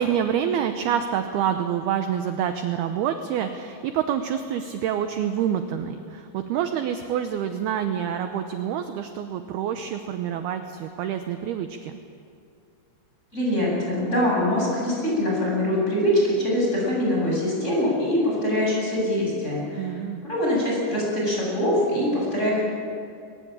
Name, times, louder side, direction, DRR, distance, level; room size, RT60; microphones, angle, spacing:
voice 1, 0.0-12.0 19.8-20.2, right 9 dB, 75° right, 7 dB, 2.5 m, -27 dB
voice 2, 13.3-19.9 20.2-22.6, left 1 dB, 15° left, -4 dB, 8.1 m, -23 dB
22.5 x 20.5 x 8.8 m, 2.4 s
omnidirectional pair, 5.4 m